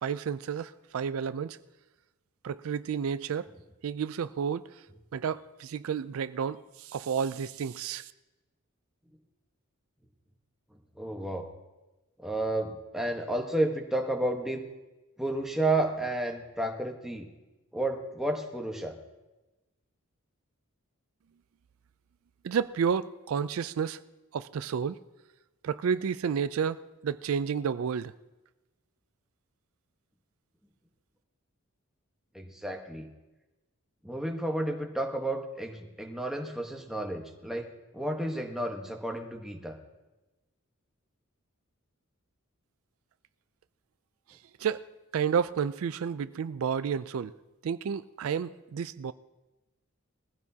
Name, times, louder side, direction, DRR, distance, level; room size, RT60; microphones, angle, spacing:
voice 1, 0.0-1.6 2.4-3.5 3.8-4.7 5.1-8.1 22.4-24.0 24.3-25.0 25.6-28.1 44.6-44.8 45.1-47.3 47.6-49.1, right 7 dB, 75° right, 0.4 m, -31 dB
voice 2, 11.0-11.5 12.2-14.6 15.2-17.3 17.7-18.9 32.3-33.1 34.0-39.8, right 1 dB, ahead, 1.2 m, -31 dB
21.0 x 15.0 x 2.8 m
head